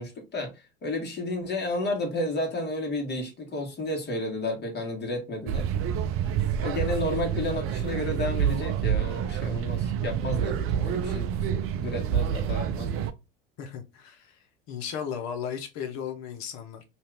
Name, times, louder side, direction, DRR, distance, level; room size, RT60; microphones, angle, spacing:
voice 1, 0.0-5.7 6.6-11.3 11.7-13.1, left 1 dB, 35° left, 1.4 m, -32 dB
sound 1, 5.5-13.1, right 8 dB, 45° right, 0.5 m, -28 dB
voice 2, 13.6-16.8, left 8 dB, 60° left, 1.0 m, -36 dB
2.7 x 2.5 x 3.4 m
hypercardioid pair, 90°, 32 cm